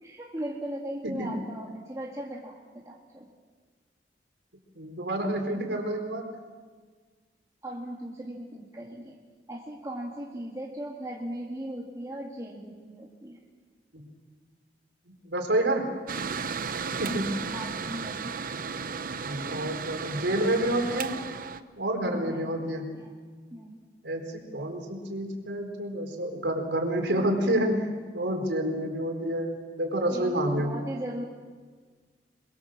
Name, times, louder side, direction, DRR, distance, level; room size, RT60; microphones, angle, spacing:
voice 1, 0.0-3.3 7.6-9.2 9.5-13.4 17.5-18.4 22.1-23.2 23.5-23.8 30.1-31.2, right 1 dB, 20° right, -1 dB, 1.9 m, -38 dB
voice 2, 4.8-6.2 13.9-14.0 15.3-15.9 17.0-17.4 19.2-21.1 21.8-22.9 24.0-27.9 28.1-30.7, right 1 dB, 80° right, 3 dB, 4.3 m, -28 dB
Mechanical fan, 16.1-21.6, right 5 dB, 50° right, 0.9 m, -34 dB
27.5 x 21.5 x 7.5 m, 1.5 s
head